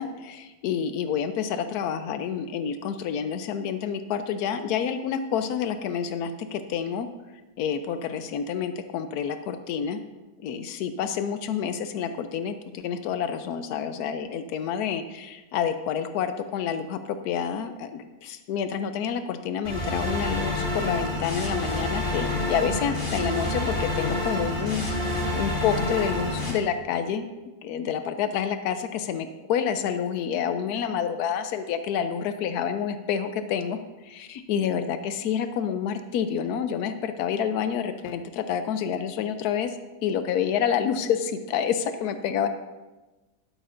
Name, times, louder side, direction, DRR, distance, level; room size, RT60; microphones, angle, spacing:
voice 1, 0.0-7.1 7.6-10.0 10.4-27.3 27.6-39.8 40.0-42.5, left 8 dB, 90° left, 9 dB, 1.1 m, -28 dB
sound 1, 19.6-26.5, left 2 dB, 35° left, 2.3 m, -28 dB
12.0 x 11.0 x 2.6 m, 1.1 s
omnidirectional pair, 1.6 m